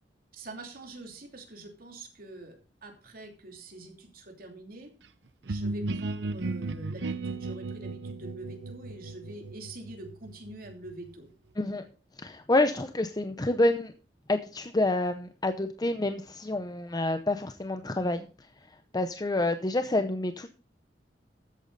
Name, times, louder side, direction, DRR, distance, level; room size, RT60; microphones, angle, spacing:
voice 1, 0.3-2.6 2.8-4.9 5.4-11.3, right 2 dB, 55° right, 3 dB, 2.9 m, -45 dB
sound 1, 5.5-11.1, right 3 dB, 80° right, 0.7 m, -35 dB
voice 2, 12.2-13.9 14.3-18.3 18.9-20.5, left 2 dB, 20° left, 8 dB, 0.7 m, -28 dB
13.0 x 8.6 x 4.0 m, 0.35 s
head